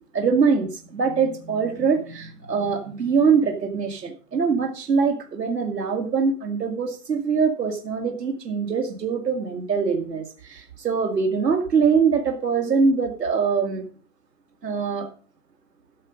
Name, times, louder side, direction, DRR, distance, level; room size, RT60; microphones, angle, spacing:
voice 1, 0.1-13.8 14.6-15.1, right 5 dB, 85° right, 2.5 m, -23 dB
13.5 x 6.8 x 5.1 m
hypercardioid pair, 160°, 48 cm